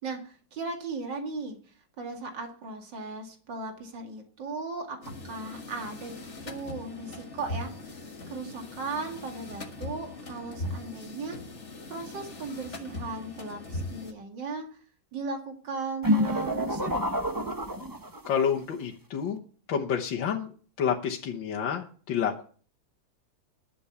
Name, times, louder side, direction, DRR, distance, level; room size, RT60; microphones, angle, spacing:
voice 1, 0.0-1.6 2.0-6.2 6.4-7.9 8.3-11.4 11.9-14.7 15.1-17.2, right 3 dB, 75° right, 3 dB, 2.8 m, -37 dB
sound 1, 5.0-14.1, left 2 dB, 40° left, 1.9 m, -40 dB
sound 2, 16.0-18.4, equal, 15° right, 0.9 m, -28 dB
voice 2, 18.3-19.4 19.7-20.5 20.8-22.4, left 7 dB, 85° left, -1 dB, 1.9 m, -29 dB
11.5 x 7.1 x 8.3 m, 0.42 s
omnidirectional pair, 2.0 m